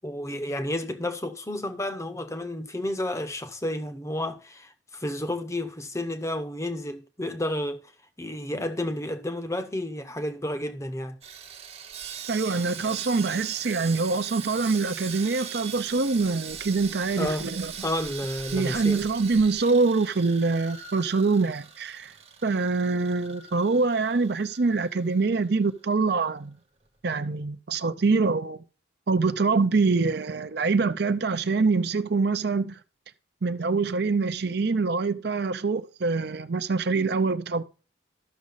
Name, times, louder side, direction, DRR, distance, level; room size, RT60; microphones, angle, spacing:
voice 1, 0.0-7.8 8.2-11.2 17.2-17.5 17.8-19.0, left 1 dB, 15° left, 0.7 m, -31 dB
Sawing, 11.2-25.5 25.7-25.9 26.4-26.5, right 7 dB, 30° right, 1.0 m, -40 dB
voice 2, 12.3-17.7 18.5-22.1 22.4-26.5 27.0-28.6 29.1-32.8 33.4-37.6, right 4 dB, 55° right, 0.6 m, -25 dB
13.0 x 6.2 x 4.0 m
head